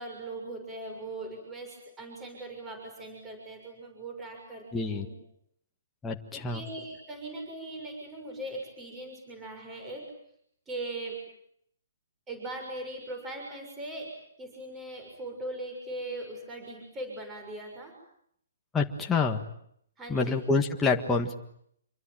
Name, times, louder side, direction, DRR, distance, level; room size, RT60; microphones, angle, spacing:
voice 1, 0.0-5.1 6.3-10.1 10.7-11.2 12.3-14.1 14.4-17.9 20.0-20.5, right 2 dB, 10° right, 3 dB, 6.4 m, -40 dB
voice 2, 4.7-5.1 6.0-6.6 18.7-19.4 20.1-21.4, left 4 dB, 10° left, 1 dB, 1.7 m, -27 dB
27.5 x 24.0 x 9.1 m, 0.70 s
hypercardioid pair, 165°, 0 cm